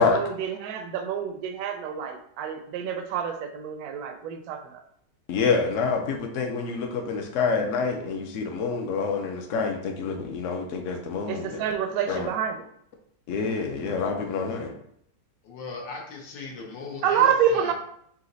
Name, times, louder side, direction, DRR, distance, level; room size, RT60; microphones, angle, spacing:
voice 1, 0.1-4.8 11.3-12.7 17.0-17.7, right 8 dB, 70° right, 7 dB, 0.9 m, -27 dB
voice 2, 5.3-11.6 12.1-12.3 13.3-14.7, left 4 dB, 60° left, 3 dB, 0.8 m, -27 dB
voice 3, 15.4-17.7, left 4 dB, 85° left, -1 dB, 1.6 m, -38 dB
4.1 x 2.9 x 3.9 m, 0.69 s
omnidirectional pair, 1.9 m